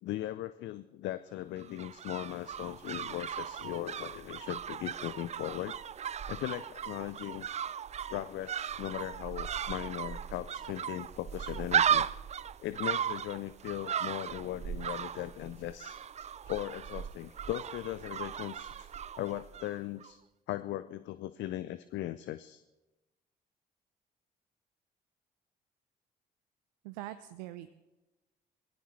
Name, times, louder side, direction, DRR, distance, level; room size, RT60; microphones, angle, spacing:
voice 1, 0.0-5.7 6.3-7.5 8.1-12.1 12.6-18.9 19.2-20.2 20.5-22.6, left 14 dB, 60° left, 14 dB, 0.5 m, -38 dB
sound 1, 1.6-19.8 20.0-20.1, right 8 dB, 30° right, 0.4 m, -36 dB
voice 2, 26.8-27.7, right 15 dB, 80° right, 11 dB, 0.6 m, -43 dB
21.5 x 16.0 x 3.2 m, 1.1 s
hypercardioid pair, 45°, 21 cm